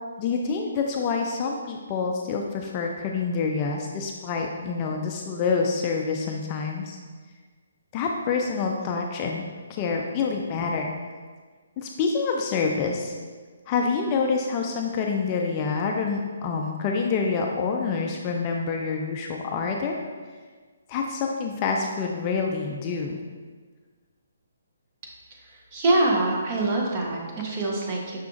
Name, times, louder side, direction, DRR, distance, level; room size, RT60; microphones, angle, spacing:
voice 1, 0.2-7.0 7.9-9.4 9.7-10.9 11.8-13.1 13.7-20.0 20.9-23.2, left 5 dB, 25° left, 1 dB, 0.3 m, -27 dB
voice 2, 25.4-28.2, right 2 dB, 25° right, -1 dB, 0.7 m, -25 dB
5.7 x 2.4 x 3.7 m, 1.5 s
hypercardioid pair, 160°, 0 cm